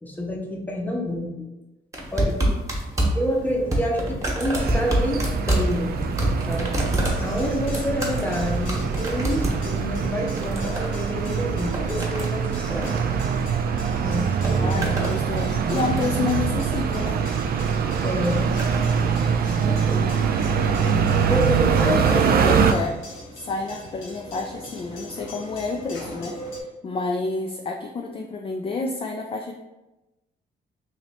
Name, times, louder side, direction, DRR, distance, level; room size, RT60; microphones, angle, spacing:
voice 1, 0.0-1.3 2.1-2.4 3.1-5.9 6.5-6.7 7.2-13.1 14.0-14.9 18.0-18.6 19.5-20.1 21.2-22.2, equal, 10° left, 0 dB, 0.7 m, -28 dB
sound 1, 1.9-13.9 14.1-15.2 15.5-16.2 17.2-17.4 18.2-18.9 19.8-19.9, right 1 dB, 15° right, 1.1 m, -27 dB
sound 2, 4.6-22.7, right 6 dB, 55° right, 0.4 m, -24 dB
sound 3, 6.9-26.6, left 2 dB, 80° left, 1.0 m, -42 dB
voice 2, 14.6-17.2 21.2-21.4 21.7-22.9 23.3-29.5, left 3 dB, 30° left, 1 dB, 0.3 m, -29 dB
3.1 x 2.8 x 4.2 m, 1.0 s
cardioid pair, 110°, 19 cm